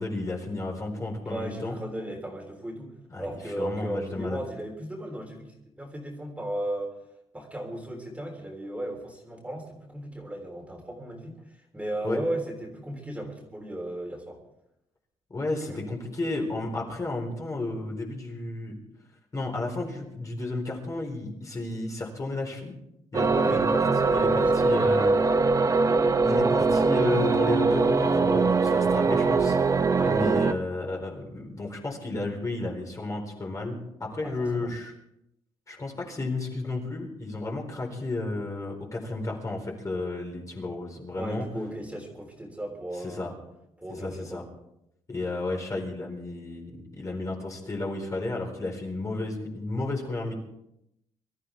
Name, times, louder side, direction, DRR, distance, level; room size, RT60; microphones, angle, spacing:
voice 1, 0.0-1.8 3.1-4.4 12.0-12.2 15.3-18.8 19.3-22.7 23.1-23.8 24.1-25.1 26.2-29.6 30.1-34.9 35.7-41.5 43.0-43.3 44.0-44.4 45.1-50.3, left 2 dB, 30° left, 0 dB, 4.2 m, -32 dB
voice 2, 1.3-7.0 7.3-14.4 15.6-15.8 23.3-23.7 24.0-24.6 29.9-30.2 34.2-34.7 41.1-43.3 43.8-44.5, right 1 dB, 10° right, 0 dB, 3.5 m, -36 dB
sound 1, 23.1-30.5, right 4 dB, 25° right, 0.8 m, -22 dB
24.5 x 13.5 x 3.5 m, 0.80 s
cardioid pair, 130°, 12 cm